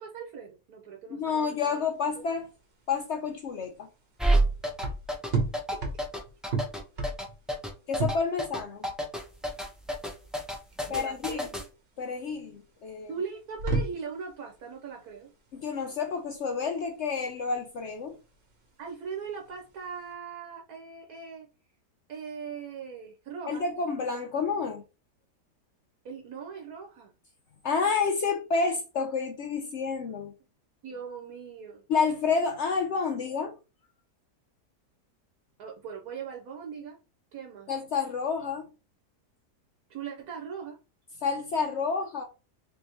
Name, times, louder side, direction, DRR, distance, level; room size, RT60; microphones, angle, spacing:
voice 1, 0.0-1.8 2.1-2.2 5.7-5.8 10.9-11.5 13.1-15.3 18.8-21.5 22.1-23.6 26.0-27.1 30.8-31.8 35.6-37.0 37.3-37.7 39.9-40.8, right 6 dB, 70° right, 1.3 m, -40 dB
voice 2, 1.1-2.5 2.9-3.9 7.9-8.9 10.9-11.4 12.0-13.1 15.5-18.2 23.5-24.8 27.6-30.3 31.9-33.5 37.7-38.7 41.2-42.2, left 5 dB, 70° left, 0.6 m, -29 dB
sound 1, 1.9-20.1, right 3 dB, 45° right, 1.0 m, -36 dB
sound 2, 4.2-11.6, right 1 dB, ahead, 0.4 m, -27 dB
3.5 x 3.4 x 2.9 m
omnidirectional pair, 1.8 m